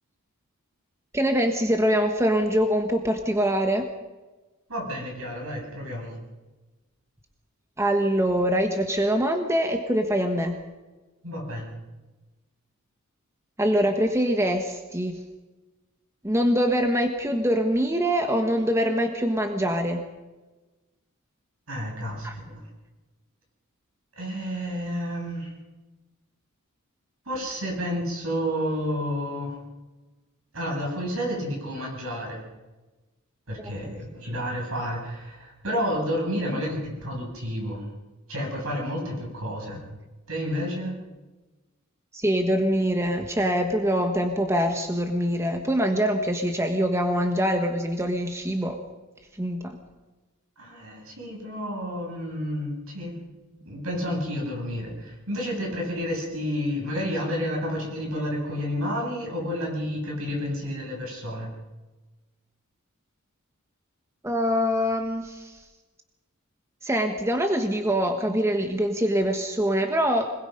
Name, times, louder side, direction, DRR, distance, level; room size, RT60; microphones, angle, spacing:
voice 1, 1.1-3.9 7.8-10.6 13.6-15.2 16.2-20.1 22.2-22.3 33.8-33.9 42.1-48.8 49.4-49.8 64.2-65.6 66.8-70.3, equal, 15° right, 5 dB, 1.4 m, -24 dB
voice 2, 4.7-6.2 11.2-11.8 21.7-22.6 24.2-25.5 27.2-29.6 30.5-32.4 33.5-37.8 38.3-39.8 40.3-41.0 50.6-53.2 53.5-61.5, equal, 70° right, -1 dB, 7.7 m, -30 dB
25.5 x 21.0 x 5.4 m, 1.2 s
head